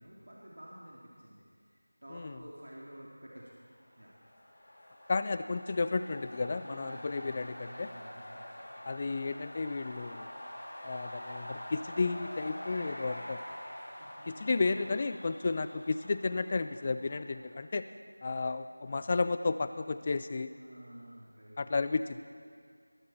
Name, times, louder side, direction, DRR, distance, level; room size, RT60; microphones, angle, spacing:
voice 1, 0.0-3.6 3.9-4.1 6.6-7.3 7.6-9.0 14.0-14.6 20.6-21.9, right 1 dB, 85° right, -5 dB, 2.7 m, -51 dB
sound 1, 3.8-17.6, left 1 dB, 40° left, 3.3 m, -46 dB
voice 2, 5.1-7.9 8.9-10.3 10.8-13.4 14.3-17.9 18.2-20.5 21.6-22.2, left 3 dB, 20° left, 12 dB, 0.3 m, -32 dB
19.5 x 12.0 x 4.4 m, 2.2 s
figure-of-eight pair, 175°, 0 cm